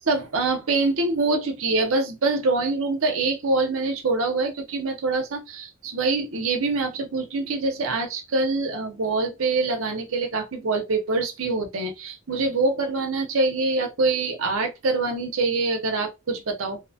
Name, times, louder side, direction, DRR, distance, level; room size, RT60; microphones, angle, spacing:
voice 1, 0.0-16.8, right 3 dB, 75° right, 0.8 m, -25 dB
2.8 x 2.1 x 2.7 m
head